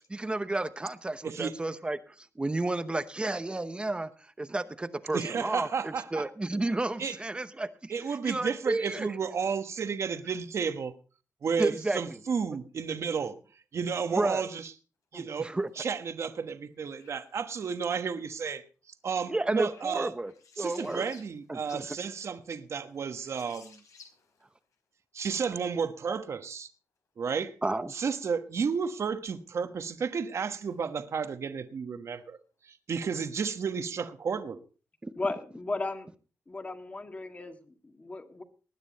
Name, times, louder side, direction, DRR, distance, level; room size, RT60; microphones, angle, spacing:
voice 1, 0.1-7.9 8.2-9.2 11.6-12.2 14.1-14.5 15.1-15.7 19.3-21.1 21.5-22.0 27.6-27.9 35.0-35.1, right 2 dB, 20° right, 0.9 m, -32 dB
voice 2, 1.2-1.5 5.1-6.2 7.0-7.2 7.9-10.9 11.4-13.4 13.7-14.7 15.1-15.5 15.8-18.6 19.0-20.1 20.6-23.8 25.1-26.7 27.2-27.5 27.9-32.4 32.7-34.6, right 6 dB, 55° right, 1.2 m, -32 dB
sound 1, 15.5-16.0 16.9-17.5 19.1-21.9 22.3-22.4 22.9-24.8 25.5-25.7 29.5-29.6 30.1-31.1, left 5 dB, 75° left, 4.4 m, -58 dB
voice 3, 35.2-36.1 36.5-38.4, left 3 dB, 25° left, 1.9 m, -35 dB
20.0 x 9.9 x 4.1 m
wide cardioid pair, 120°, 6 cm